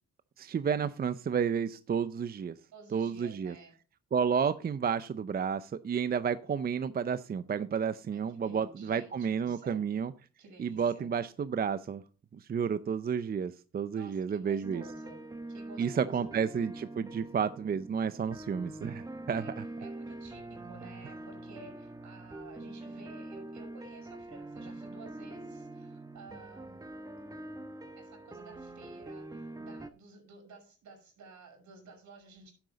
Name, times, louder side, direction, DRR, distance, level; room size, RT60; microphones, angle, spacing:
voice 1, 0.4-2.6 2.9-3.5 4.1-10.1 10.6-12.0 12.3-14.8 15.8-19.4, right 7 dB, 30° right, 13 dB, 0.5 m, -31 dB
voice 2, 2.7-3.7 8.1-9.9 10.4-11.1 14.0-15.2 15.5-16.3 19.3-19.5 19.8-26.8 28.0-32.5, right 3 dB, 70° right, 3 dB, 5.7 m, -53 dB
sound 1, 14.6-29.9, right 2 dB, 10° right, 0.9 m, -44 dB
10.5 x 7.8 x 4.1 m, 0.35 s
cardioid pair, 90°, 30 cm